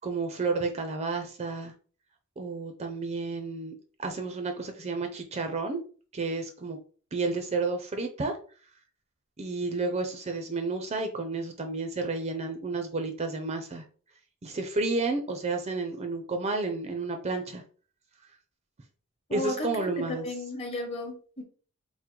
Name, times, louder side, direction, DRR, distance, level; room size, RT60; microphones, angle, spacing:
voice 1, 0.0-1.7 2.4-3.7 4.0-5.8 6.1-6.8 7.1-8.4 9.4-13.8 14.4-17.6 19.3-20.3, right 3 dB, 30° right, 0.5 m, -31 dB
voice 2, 19.3-21.4, left 1 dB, 25° left, 1.0 m, -34 dB
3.7 x 2.0 x 4.3 m
head